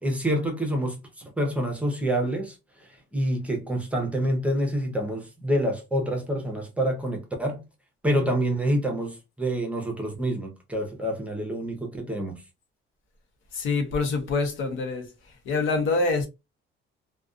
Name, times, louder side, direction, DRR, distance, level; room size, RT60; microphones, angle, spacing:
voice 1, 0.0-7.6 8.0-12.4, right 1 dB, 5° right, 0.7 m, -27 dB
voice 2, 13.5-15.1 15.4-16.3, left 3 dB, 75° left, 0.9 m, -25 dB
2.4 x 2.3 x 2.4 m
cardioid pair, 125°, 20 cm